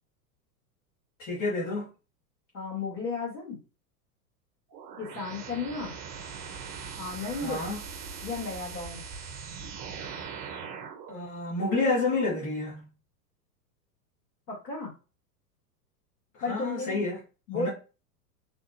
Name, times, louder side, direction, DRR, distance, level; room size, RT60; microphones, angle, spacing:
voice 1, 1.2-1.9 7.4-7.8 11.1-12.9 16.5-17.2 17.5-17.7, left 3 dB, 40° left, 1.9 m, -29 dB
voice 2, 2.5-3.6 5.0-6.0 7.0-7.6 8.2-9.0 14.5-14.9 16.4-17.0 17.5-17.7, left 4 dB, 85° left, 1.8 m, -34 dB
sound 1, 4.7-11.1, right 6 dB, 40° right, 0.9 m, -41 dB
4.0 x 3.5 x 2.6 m
hypercardioid pair, 105°, 49 cm